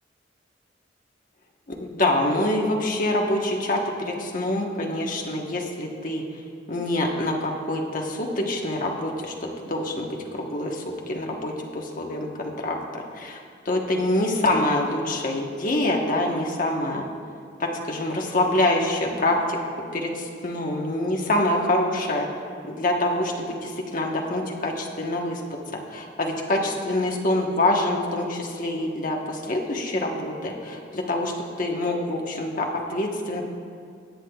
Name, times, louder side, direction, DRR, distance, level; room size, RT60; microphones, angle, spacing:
voice 1, 1.7-6.2 6.7-9.3 9.6-13.4 13.7-17.1 17.6-19.6 19.9-22.3 22.6-25.4 25.9-31.3 31.6-33.4, left 1 dB, 45° left, 0 dB, 1.1 m, -25 dB
18.0 x 8.3 x 2.3 m, 2.3 s
head